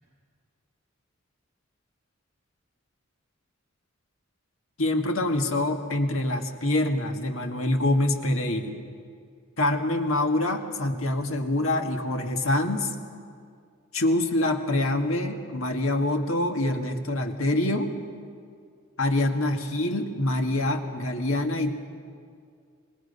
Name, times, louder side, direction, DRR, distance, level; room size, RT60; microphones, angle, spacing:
voice 1, 4.8-8.8 9.6-12.9 13.9-17.9 19.0-21.8, left 1 dB, 90° left, 4 dB, 1.7 m, -25 dB
26.0 x 19.5 x 5.5 m, 2.2 s
head